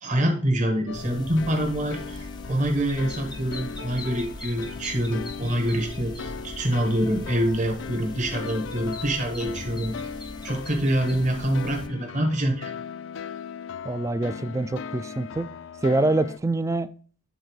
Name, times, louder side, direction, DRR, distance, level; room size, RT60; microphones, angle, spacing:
voice 1, 0.0-9.9 10.4-12.7, right 1 dB, 40° right, 1.5 m, -26 dB
sound 1, 0.9-16.4, left 6 dB, 75° left, 0.4 m, -38 dB
sound 2, 0.9-11.9, left 2 dB, 20° left, 0.6 m, -41 dB
voice 2, 13.8-15.5 15.8-16.9, right 2 dB, 15° right, 0.3 m, -25 dB
9.0 x 4.0 x 4.7 m
head